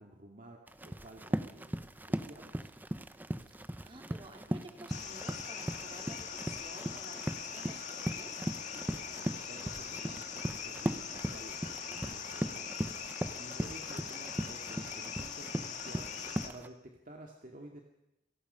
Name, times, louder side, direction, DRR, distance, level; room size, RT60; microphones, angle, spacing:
voice 1, 0.0-2.7 8.7-16.2 16.4-17.8, right 1 dB, 50° right, 1 dB, 2.1 m, -52 dB
Run, 0.7-16.7, equal, 10° right, 0.7 m, -39 dB
voice 2, 3.5-8.4, right 1 dB, 30° right, 2 dB, 3.6 m, -52 dB
sound 1, 4.9-16.5, left 7 dB, 40° left, 2.0 m, -42 dB
28.0 x 18.0 x 5.6 m, 0.89 s
head